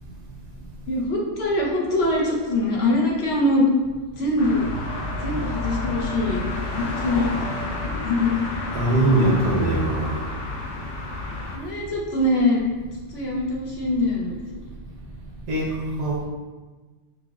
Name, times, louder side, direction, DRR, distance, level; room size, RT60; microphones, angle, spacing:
voice 1, 0.9-3.7 4.2-4.7 5.2-7.5 7.8-8.3 11.5-12.6 13.1-14.4, left 1 dB, 65° left, -3 dB, 0.9 m, -23 dB
sound 1, 4.4-11.6, left 2 dB, 85° left, 0.9 m, -30 dB
voice 2, 8.7-10.2 15.5-15.7 16.0-16.2, right 1 dB, 75° right, -4 dB, 1.3 m, -21 dB
5.8 x 2.1 x 2.3 m, 1.3 s
omnidirectional pair, 1.2 m